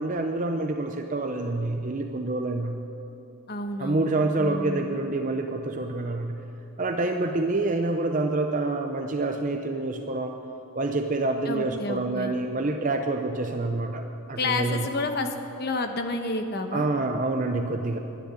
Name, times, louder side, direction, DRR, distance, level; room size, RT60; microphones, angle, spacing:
voice 1, 0.0-2.8 3.8-6.4 6.8-10.4 10.8-14.9 16.7-18.0, right 2 dB, 35° right, 5 dB, 0.6 m, -27 dB
voice 2, 3.5-5.0 11.5-12.3 14.4-16.9, left 2 dB, 45° left, 6 dB, 1.1 m, -30 dB
12.0 x 10.5 x 9.6 m, 3.0 s
head